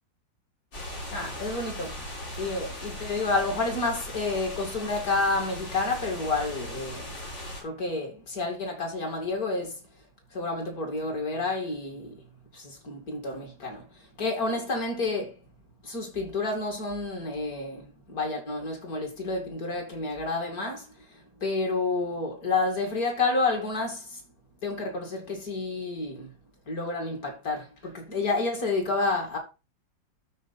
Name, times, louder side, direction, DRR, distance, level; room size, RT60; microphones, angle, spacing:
sound 1, 0.7-7.6, left 1 dB, 80° left, 6.0 m, -38 dB
voice 1, 1.1-2.0 2.4-7.1 7.6-9.8 10.3-12.2 12.5-13.9 14.2-15.4 15.8-20.9 21.4-24.2 24.6-26.3 26.7-29.4, left 3 dB, 50° left, 2.9 m, -29 dB
13.0 x 4.4 x 4.3 m
omnidirectional pair, 2.0 m